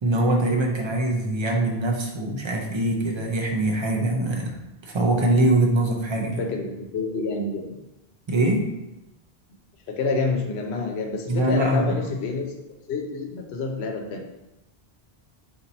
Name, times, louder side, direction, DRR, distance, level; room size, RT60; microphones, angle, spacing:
voice 1, 0.0-4.5 4.8-6.4 8.3-8.6 11.3-12.0, right 1 dB, 45° right, 0 dB, 0.4 m, -23 dB
voice 2, 6.1-7.8 9.9-12.6 12.9-14.3, left 3 dB, 85° left, 2 dB, 0.9 m, -28 dB
2.7 x 2.6 x 4.0 m, 0.95 s
omnidirectional pair, 1.1 m